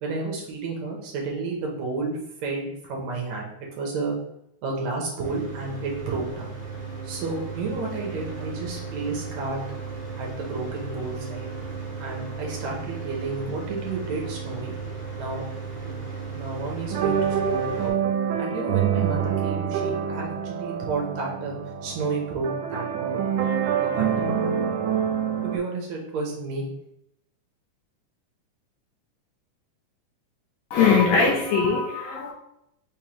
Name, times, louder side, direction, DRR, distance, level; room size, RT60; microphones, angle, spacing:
voice 1, 0.0-3.5 3.8-4.2 4.6-6.5 7.0-9.6 10.2-11.5 12.0-14.7 15.2-15.4 15.8-15.9 16.3-18.0 18.4-21.6 21.8-23.3 23.8-24.1 25.4-26.7, right 3 dB, 70° right, -1 dB, 2.0 m, -31 dB
Mechanical fan, 5.2-17.9, right 5 dB, 55° right, 1.1 m, -35 dB
sound 1, 16.9-25.6, right 8 dB, 85° right, 2.1 m, -26 dB
voice 2, 30.7-32.3, left 5 dB, 80° left, 0 dB, 1.7 m, -21 dB
5.1 x 3.5 x 3.0 m, 0.79 s
omnidirectional pair, 3.5 m